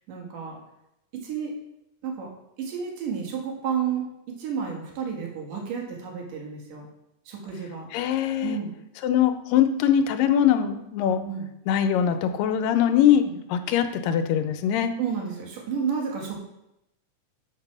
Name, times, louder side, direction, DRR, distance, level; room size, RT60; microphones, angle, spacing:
voice 1, 0.1-0.6 1.1-1.5 2.0-2.3 2.6-6.9 7.3-7.9 8.4-8.7 11.2-11.5 13.2-13.3 15.0-16.4, right 7 dB, 75° right, 0 dB, 3.2 m, -31 dB
voice 2, 7.9-8.6 9.0-11.2 11.7-13.2 13.5-14.9, left 9 dB, 85° left, 8 dB, 2.4 m, -22 dB
7.4 x 5.9 x 6.0 m, 0.85 s
omnidirectional pair, 3.9 m